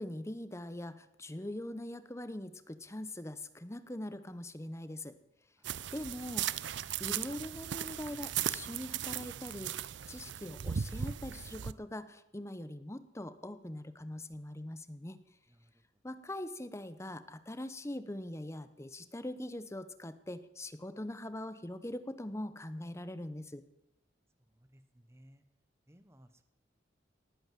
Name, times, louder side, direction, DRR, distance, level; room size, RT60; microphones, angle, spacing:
voice 1, 0.0-5.2 5.9-15.2 16.0-23.6, left 1 dB, 15° left, 12 dB, 0.9 m, -42 dB
sound 1, 5.6-11.7, right 9 dB, 70° right, 0.5 m, -37 dB
voice 2, 15.5-15.8 24.5-25.4 25.9-26.4, equal, 15° right, 10 dB, 1.0 m, -61 dB
18.5 x 8.9 x 7.5 m, 0.88 s
head